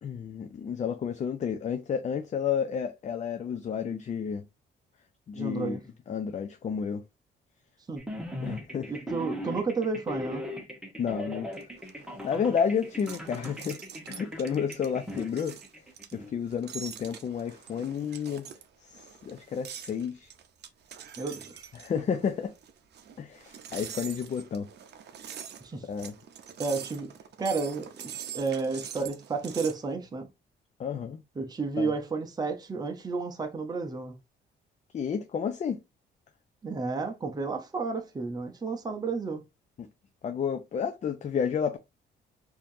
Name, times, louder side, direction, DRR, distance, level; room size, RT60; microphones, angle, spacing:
voice 1, 0.0-4.4 5.3-5.8 6.1-7.0 8.4-8.9 11.0-11.5 12.2-13.8 14.1-15.5 16.1-18.5 18.8-20.3 21.7-22.5 23.2-24.7 25.8-26.1 30.8-31.2 31.8-31.9 34.9-35.8 39.8-39.9 40.2-41.8, left 7 dB, 35° left, 0.4 m, -31 dB
voice 2, 5.4-5.8 7.9-8.0 8.9-10.4 21.2-21.7 25.6-25.8 26.6-27.1 27.4-30.3 31.4-34.1 36.6-39.4, right 4 dB, 20° right, 0.7 m, -32 dB
sound 1, 8.0-16.3, equal, 5° right, 1.2 m, -39 dB
sound 2, 11.5-29.8, right 8 dB, 55° right, 0.6 m, -44 dB
4.3 x 2.7 x 2.6 m
cardioid pair, 90°, 20 cm